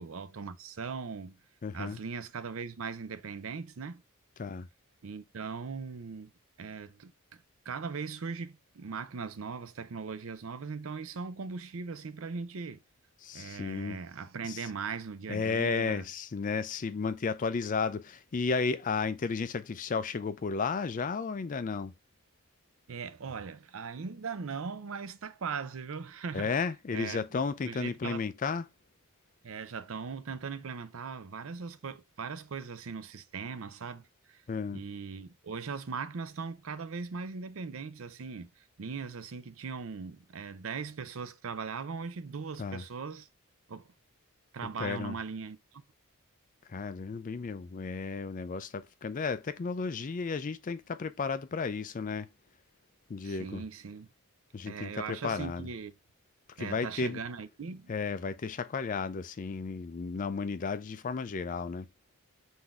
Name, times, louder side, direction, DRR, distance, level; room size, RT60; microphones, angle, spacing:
voice 1, 0.0-1.4 1.7-4.0 5.0-6.3 6.6-12.8 13.3-16.0 22.9-26.5 26.9-28.2 29.4-34.4 34.7-43.3 43.7-43.9 44.5-45.8 53.2-54.1 54.7-55.9 56.6-57.9, right 5 dB, 60° right, 0.5 m, -39 dB
voice 2, 1.6-2.0 4.4-4.7 13.2-14.0 14.5-14.7 15.3-21.9 26.3-28.7 34.5-34.8 42.6-42.8 44.8-45.2 46.7-52.3 53.1-53.6 54.5-55.7 56.6-57.2 57.9-61.9, left 5 dB, 35° left, 0.4 m, -33 dB
3.9 x 2.7 x 4.6 m
head